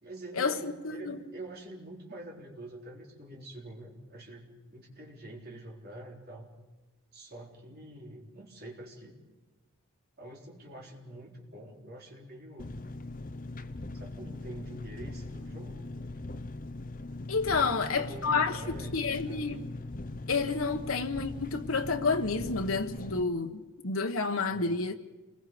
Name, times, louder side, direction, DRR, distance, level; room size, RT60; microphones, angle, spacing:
voice 1, 0.0-6.5 7.1-9.2 10.2-12.8 13.9-15.9 16.1-16.5 17.5-19.6 24.5-24.8, right 1 dB, 45° right, 3.8 m, -46 dB
Engine, 12.6-23.2, left 2 dB, 40° left, 0.8 m, -41 dB
voice 2, 17.3-19.6 20.3-24.9, left 4 dB, 75° left, 1.2 m, -30 dB
28.5 x 21.0 x 5.1 m
head